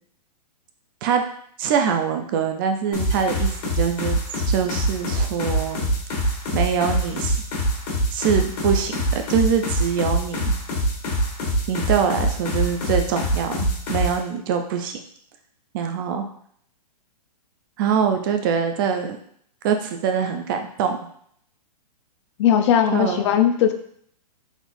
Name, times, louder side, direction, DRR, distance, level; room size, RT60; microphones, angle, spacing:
voice 1, 1.6-5.9 6.5-7.4 8.1-10.5 11.7-15.0 15.7-16.3 17.8-19.2 19.6-21.0 22.9-23.2, right 7 dB, 30° right, 5 dB, 0.3 m, -24 dB
sound 1, 2.9-14.2, equal, 70° left, 1.4 m, -24 dB
voice 2, 22.4-23.7, left 9 dB, 45° left, 7 dB, 0.4 m, -18 dB
4.0 x 3.1 x 2.5 m, 0.64 s
hypercardioid pair, 145°, 21 cm